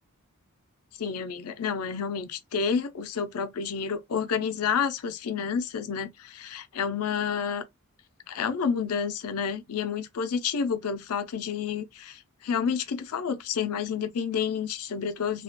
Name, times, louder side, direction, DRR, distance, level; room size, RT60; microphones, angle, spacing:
voice 1, 1.0-7.6 8.3-15.4, left 6 dB, 75° left, 0.5 m, -29 dB
2.4 x 2.2 x 2.4 m
head